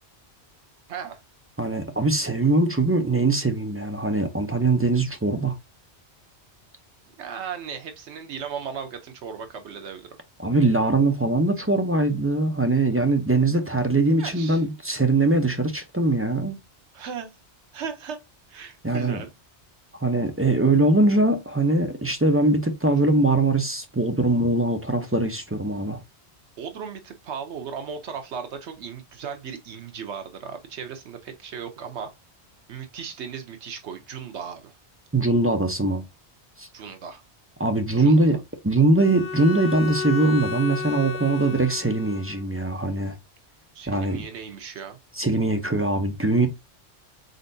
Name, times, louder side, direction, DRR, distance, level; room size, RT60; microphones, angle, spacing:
voice 1, 0.9-1.2 7.2-10.1 14.2-14.6 16.9-17.4 17.7-18.2 18.5-19.3 26.6-32.1 32.7-34.7 36.7-37.2 37.9-38.4 43.7-45.0, right 7 dB, 80° right, 1.0 m, -36 dB
voice 2, 1.6-5.6 10.4-16.6 18.8-19.2 20.0-26.0 35.1-36.0 36.6-36.7 37.6-38.4 38.6-43.2 43.9-44.2 45.1-46.5, right 2 dB, 20° right, 0.4 m, -22 dB
Bowed string instrument, 39.0-42.5, left 5 dB, 80° left, 1.8 m, -33 dB
4.3 x 4.0 x 2.6 m
omnidirectional pair, 1.1 m